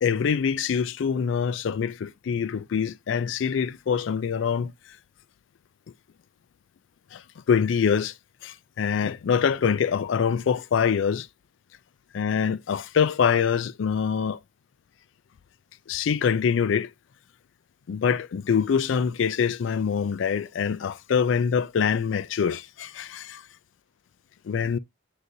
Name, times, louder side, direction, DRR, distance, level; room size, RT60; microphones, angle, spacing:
voice 1, 0.0-4.7 7.1-7.2 7.5-8.1 8.4-11.3 12.1-14.4 15.9-16.9 17.9-23.4 24.5-24.8, left 7 dB, 70° left, 0.4 m, -24 dB
9.4 x 3.9 x 2.7 m
head